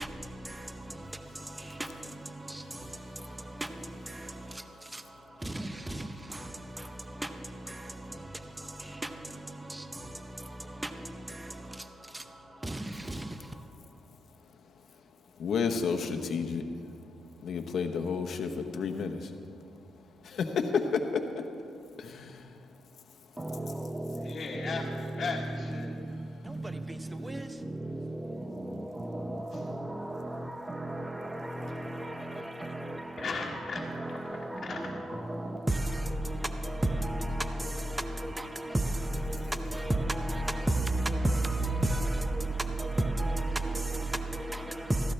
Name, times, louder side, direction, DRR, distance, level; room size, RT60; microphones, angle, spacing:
voice 1, 15.4-16.6 17.4-19.2 20.2-21.2, left 5 dB, 60° left, 4 dB, 1.0 m, -30 dB
voice 2, 23.4-24.2 24.5-24.8 27.2-27.4 27.8-28.0 28.3-28.4 29.0-32.3 32.6-33.3 33.7-36.4 36.6-37.5 37.9-38.8 39.3-39.5 39.7-42.5 42.8-45.0, right 1 dB, 10° right, 8 dB, 0.7 m, -32 dB
voice 3, 24.2-25.9 33.2-33.8 34.3-34.8, left 4 dB, 45° left, -3 dB, 1.5 m, -36 dB
16.0 x 14.5 x 3.4 m, 2.4 s
cardioid pair, 90°, 0 cm